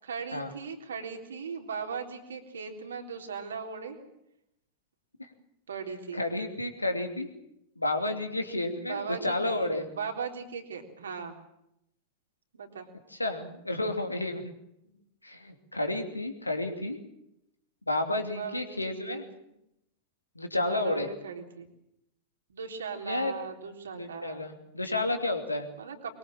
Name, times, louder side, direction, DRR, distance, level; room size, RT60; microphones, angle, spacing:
voice 1, 0.0-4.0 5.7-6.2 8.9-11.4 12.5-12.9 14.8-14.9 18.3-19.2 20.5-21.7 22.5-24.5 25.8-26.2, right 6 dB, 70° right, 4 dB, 3.7 m, -38 dB
voice 2, 6.1-7.3 7.8-9.9 13.2-14.5 15.2-17.0 17.9-19.2 20.3-21.1 23.0-23.4 23.9-25.7, left 2 dB, 85° left, 6 dB, 2.8 m, -31 dB
23.0 x 22.5 x 7.5 m, 0.81 s
figure-of-eight pair, 90°, 0 cm